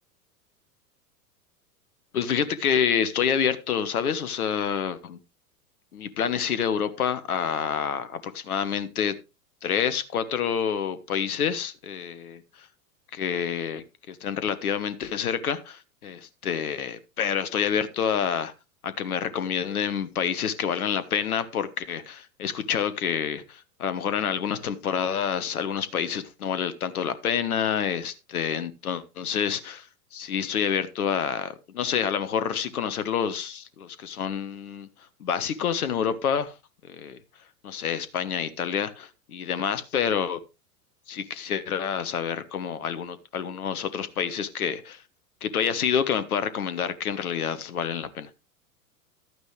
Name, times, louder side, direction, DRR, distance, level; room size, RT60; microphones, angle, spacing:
voice 1, 2.1-5.2 5.9-9.1 9.6-12.4 13.1-18.5 18.8-29.9 30.1-34.9 35.2-36.5 36.9-37.2 37.6-40.4 41.1-45.0 45.4-48.3, left 7 dB, 65° left, 14 dB, 1.2 m, -28 dB
12.0 x 9.4 x 3.2 m, 0.26 s
figure-of-eight pair, 95°, 47 cm